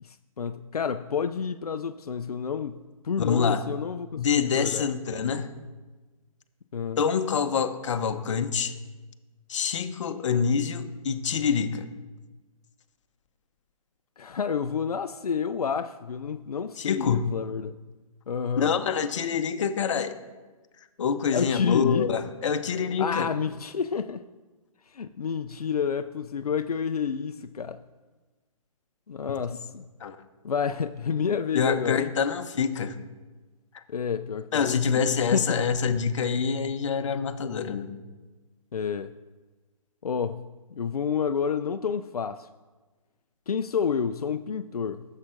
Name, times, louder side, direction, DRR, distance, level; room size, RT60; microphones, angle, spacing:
voice 1, 0.0-4.8 6.7-7.0 14.2-17.7 18.3-18.7 21.3-22.1 23.0-24.2 24.9-27.8 29.1-29.8 30.4-32.1 33.9-35.6 38.7-39.1 40.0-40.5 40.8-42.5 43.5-45.0, left 6 dB, 90° left, 9 dB, 0.4 m, -29 dB
voice 2, 3.2-3.6 4.2-5.5 7.0-8.7 9.5-11.9 16.8-17.3 18.6-20.2 21.0-23.3 30.0-30.2 31.5-32.9 33.7-33.8 34.5-37.9, left 6 dB, 55° left, 9 dB, 0.8 m, -26 dB
14.5 x 7.4 x 2.5 m, 1.2 s
figure-of-eight pair, 135°, 19 cm